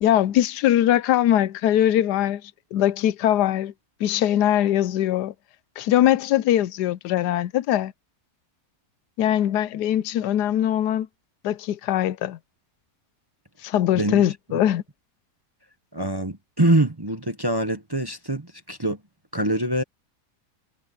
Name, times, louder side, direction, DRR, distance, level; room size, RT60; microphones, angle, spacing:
voice 1, 0.0-2.4 2.7-3.7 4.0-5.3 5.8-7.9 9.2-11.1 11.4-12.4 13.6-14.8, left 12 dB, 85° left, 1.2 m, -21 dB
voice 2, 15.9-19.0 19.3-19.8, right 1 dB, 20° right, 0.8 m, -24 dB
omnidirectional pair, 1.7 m